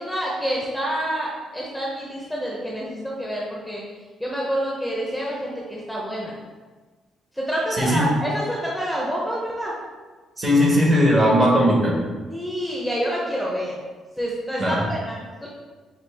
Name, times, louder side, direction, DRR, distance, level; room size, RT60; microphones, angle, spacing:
voice 1, 0.0-3.8 4.2-6.3 7.3-9.7 12.3-13.7 14.2-15.5, equal, ahead, -4 dB, 0.8 m, -27 dB
voice 2, 7.7-8.1 10.4-11.9 14.6-14.8, equal, 35° right, -3 dB, 1.5 m, -18 dB
5.8 x 2.3 x 3.5 m, 1.4 s
cardioid pair, 90°, 0 cm